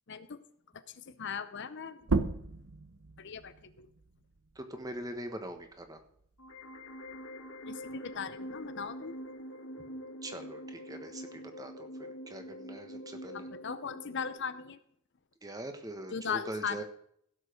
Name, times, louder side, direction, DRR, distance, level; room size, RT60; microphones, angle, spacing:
voice 1, 0.1-0.4 0.7-2.1 3.2-3.9 7.7-9.1 13.3-14.8 16.1-16.8, left 6 dB, 55° left, 12 dB, 0.7 m, -38 dB
sound 1, 2.0-7.2 7.6-9.4, right 3 dB, 75° right, 0.9 m, -37 dB
voice 2, 4.5-6.0 10.2-13.5 15.4-16.8, right 1 dB, 15° right, 6 dB, 1.4 m, -42 dB
sound 2, 6.4-14.4, equal, 75° left, 2.0 m, -45 dB
16.0 x 7.4 x 5.1 m, 0.67 s
head